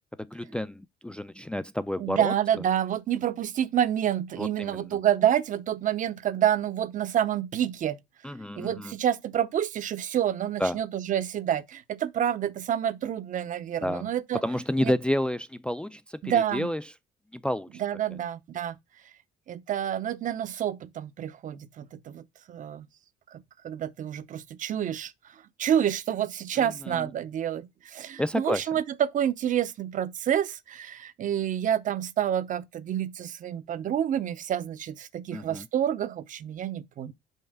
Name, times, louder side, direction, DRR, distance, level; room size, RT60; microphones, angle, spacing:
voice 1, 0.2-2.3 4.4-5.0 8.2-8.9 10.6-10.8 13.8-14.1 14.3-16.8 17.3-17.8 26.6-27.1 28.2-28.6 35.3-35.7, left 1 dB, 5° left, 0.4 m, -30 dB
voice 2, 2.0-8.0 8.6-14.4 14.8-14.9 16.2-16.7 17.8-18.8 19.5-22.2 22.5-22.9 23.3-37.1, right 10 dB, 50° right, 0.7 m, -28 dB
6.1 x 5.5 x 3.5 m
cardioid pair, 110°, 17 cm